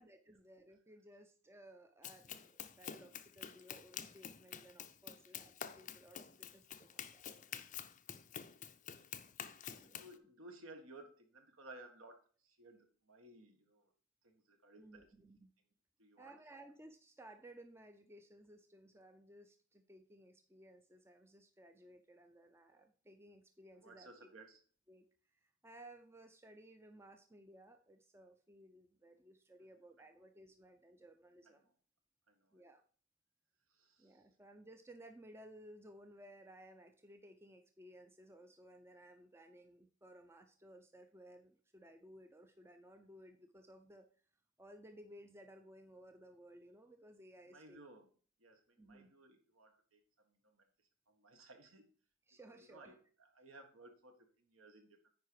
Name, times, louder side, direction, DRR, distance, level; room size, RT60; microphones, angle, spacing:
voice 1, 0.0-7.3 9.7-10.1 14.8-15.5 16.2-24.1 24.9-25.1 25.4-31.7 32.5-32.8 34.0-44.1 44.6-47.8 48.8-49.1 52.3-52.9, right 1 dB, 10° right, 6 dB, 0.5 m, -59 dB
Run, 2.0-10.1, left 8 dB, 35° left, 0.5 m, -49 dB
voice 2, 10.0-12.2 12.4-13.9 14.2-15.1 16.0-16.3 23.8-24.6 31.4-31.7 32.3-32.6 33.7-34.2 47.5-48.1 48.4-50.7 51.1-51.8 52.4-55.1, right 2 dB, 70° right, 5 dB, 1.7 m, -58 dB
9.4 x 5.0 x 4.8 m, 0.43 s
head